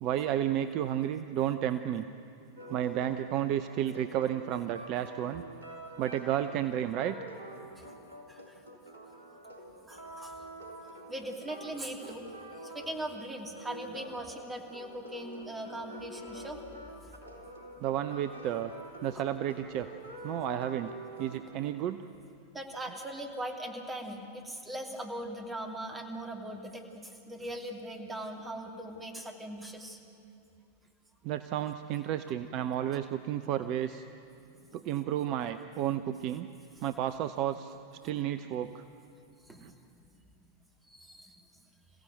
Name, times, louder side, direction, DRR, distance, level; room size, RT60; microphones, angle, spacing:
voice 1, 0.0-2.0 2.7-5.4 6.0-7.2 17.8-18.7 19.0-19.9 20.2-20.9 21.2-22.0 31.2-34.0 34.7-36.5 36.8-37.7 38.0-38.8 39.6-39.7, right 11 dB, 40° right, 10 dB, 0.7 m, -32 dB
sound 1, 2.6-21.7, right 1 dB, 70° right, 3.5 m, -47 dB
voice 2, 9.9-10.4 11.1-12.3 12.5-16.6 19.1-19.2 22.5-30.0 39.5-40.0 40.9-41.4, right 1 dB, 10° right, 3 dB, 2.6 m, -40 dB
27.0 x 16.0 x 8.0 m, 2.6 s
figure-of-eight pair, 90°, 0 cm